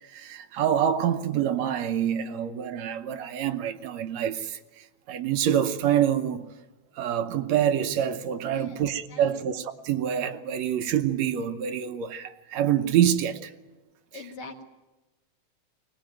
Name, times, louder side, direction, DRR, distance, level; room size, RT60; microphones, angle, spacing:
voice 1, 0.1-4.6 5.1-6.5 7.0-13.5, right 10 dB, 70° right, 2.1 m, -26 dB
voice 2, 8.5-8.8 9.1-9.5 14.1-14.6, left 3 dB, 50° left, 2.5 m, -43 dB
23.0 x 19.5 x 9.1 m
omnidirectional pair, 3.3 m